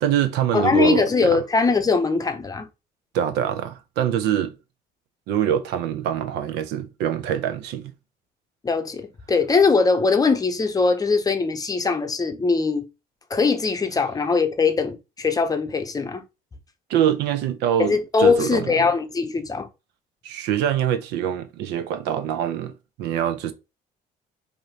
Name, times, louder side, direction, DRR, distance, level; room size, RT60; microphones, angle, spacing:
voice 1, 0.0-1.4 3.1-4.5 5.3-7.9 16.9-17.9 18.2-18.7 20.2-22.7 23.0-23.5, right 10 dB, 90° right, 0.6 m, -24 dB
voice 2, 0.5-2.7 8.6-12.9 13.3-16.2 17.8-19.7, left 4 dB, 20° left, 0.7 m, -21 dB
4.8 x 2.7 x 2.8 m
cardioid pair, 110°, 17 cm